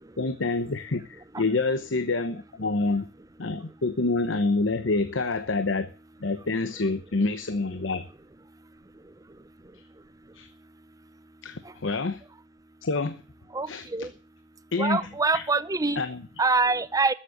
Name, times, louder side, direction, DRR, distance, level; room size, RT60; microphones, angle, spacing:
voice 1, 0.2-3.1 3.4-5.9 6.2-8.1 10.3-10.5 11.4-12.2 12.8-13.2 13.7-14.1 14.7-15.0 15.3-15.4 16.0-16.2, left 3 dB, 85° left, 0.9 m, -27 dB
voice 2, 13.5-14.1 14.8-16.0 16.4-17.1, right 3 dB, 20° right, 0.7 m, -25 dB
13.0 x 7.5 x 6.5 m
head